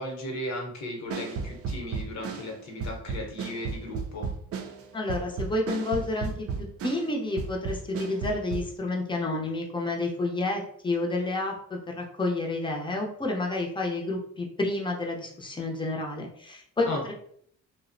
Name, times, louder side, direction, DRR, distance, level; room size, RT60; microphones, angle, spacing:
voice 1, 0.0-4.3 16.8-17.0, left 1 dB, 65° left, 1 dB, 0.9 m, -36 dB
sound 1, 1.1-7.1 7.4-8.7, right 5 dB, 50° right, 0.4 m, -34 dB
voice 2, 4.9-6.5 6.8-17.1, left 2 dB, 15° left, 0 dB, 0.5 m, -30 dB
2.6 x 2.0 x 2.5 m, 0.65 s
cardioid pair, 90°, 30 cm